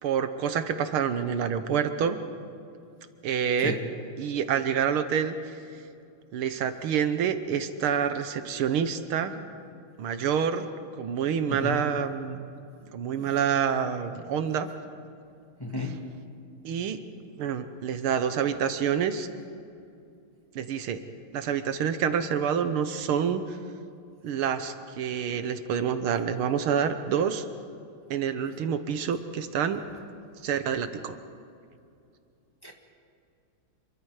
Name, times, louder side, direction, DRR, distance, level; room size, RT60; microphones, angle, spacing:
voice 1, 0.0-2.2 3.2-3.7 4.2-5.6 6.3-9.5 10.0-10.7 11.0-12.5 12.9-14.7 15.8-15.9 16.6-17.0 17.4-19.3 20.6-21.0 21.3-23.6 24.2-27.5 28.1-29.8 30.4-31.2, right 7 dB, 75° right, 9 dB, 1.9 m, -27 dB
voice 2, 15.6-16.0 32.6-32.7, left 2 dB, 10° left, 1 dB, 1.6 m, -31 dB
27.5 x 23.0 x 4.9 m, 2.5 s
omnidirectional pair, 2.4 m